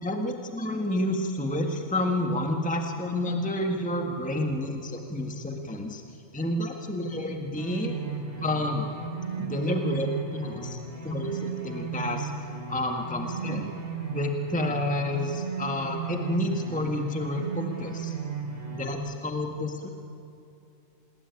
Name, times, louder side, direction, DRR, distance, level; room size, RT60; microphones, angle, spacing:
voice 1, 0.0-6.0 6.3-7.9 8.4-8.9 9.4-12.3 12.7-13.7 14.1-18.2 18.7-19.9, left 1 dB, 5° left, 2 dB, 1.6 m, -29 dB
sound 1, 7.6-18.9, right 6 dB, 45° right, 3.7 m, -35 dB
27.5 x 20.0 x 9.5 m, 2.7 s
omnidirectional pair, 1.4 m